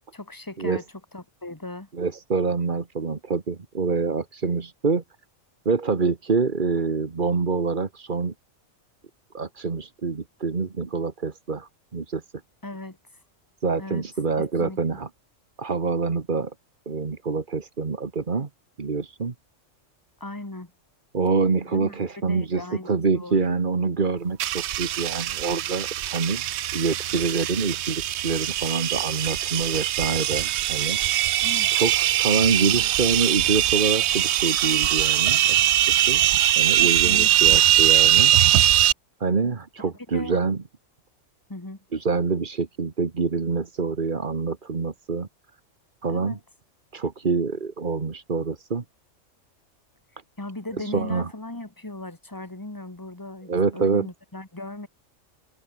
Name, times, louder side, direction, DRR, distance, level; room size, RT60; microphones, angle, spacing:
voice 1, 0.1-0.8 1.1-1.9 12.6-13.0 13.8-14.0 14.6-14.8 20.2-20.7 21.7-22.0 22.3-22.9 23.1-23.6 31.4-31.7 36.8-37.7 39.8-40.4 41.5-41.8 46.1-46.4 50.4-54.9, left 2 dB, 15° left, 2.1 m, -37 dB
voice 2, 1.9-5.0 5.6-8.3 9.3-12.2 13.6-15.1 15.6-16.5 16.8-18.5 18.8-19.3 21.1-26.5 26.7-31.0 31.7-36.2 36.6-38.3 39.2-40.6 41.9-45.3 46.0-46.4 46.9-48.8 50.8-51.3 53.5-54.1, right 4 dB, 40° right, 1.6 m, -26 dB
sound 1, 24.4-38.9, right 12 dB, 65° right, 0.8 m, -21 dB
omnidirectional pair, 1.3 m